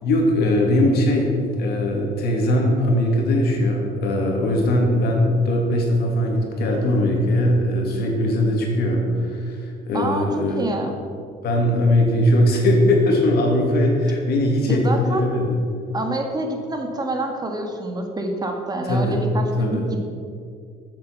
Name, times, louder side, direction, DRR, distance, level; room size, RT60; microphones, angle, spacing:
voice 1, 0.0-10.7 11.4-15.6 18.8-19.2 19.6-20.0, left 1 dB, 70° left, 1 dB, 2.7 m, -20 dB
voice 2, 9.9-10.3 10.6-10.9 14.7-15.2 15.9-20.0, right 2 dB, 25° right, 3 dB, 1.7 m, -27 dB
13.0 x 7.7 x 6.1 m, 2.3 s
cardioid pair, 110°, 17 cm